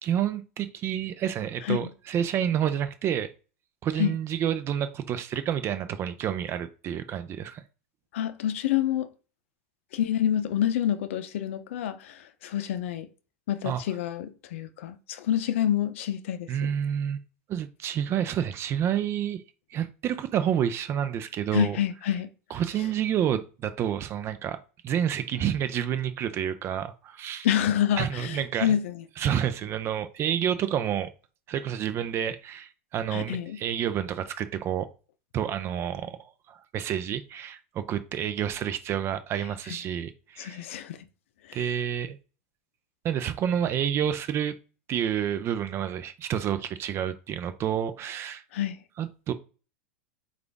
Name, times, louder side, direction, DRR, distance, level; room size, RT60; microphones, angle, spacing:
voice 1, 0.0-3.3 3.8-7.6 13.6-13.8 16.5-17.2 17.5-19.4 19.7-21.8 22.5-24.6 24.8-27.5 28.0-28.7 29.2-31.1 31.5-34.9 35.3-40.6 41.5-42.2 43.0-44.5 44.9-48.4 49.0-49.3, right 9 dB, 35° right, 0.5 m, -29 dB
voice 2, 8.1-9.1 9.9-13.1 13.5-16.7 21.5-22.3 27.4-29.0 33.1-33.6 39.7-39.8 40.4-41.0 41.4-41.7 48.5-48.8, left 10 dB, 70° left, 0.5 m, -28 dB
5.0 x 2.5 x 3.4 m
hypercardioid pair, 105°, 7 cm